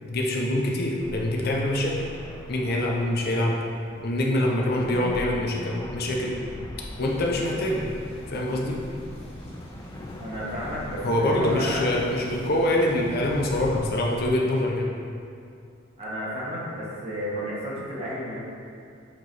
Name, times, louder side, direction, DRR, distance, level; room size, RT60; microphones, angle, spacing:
voice 1, 0.0-2.1 2.5-3.6 4.0-6.4 7.0-7.8 8.3-8.8 11.0-14.9, left 1 dB, 55° left, -1 dB, 0.7 m, -25 dB
sound 1, 1.0-14.3, left 1 dB, 20° left, 0.4 m, -41 dB
voice 2, 4.5-4.9 10.2-12.0 16.0-18.4, equal, 30° right, -7 dB, 1.4 m, -32 dB
sound 2, 7.0-14.1, equal, 35° left, 1.3 m, -42 dB
7.6 x 3.0 x 4.1 m, 2.4 s
head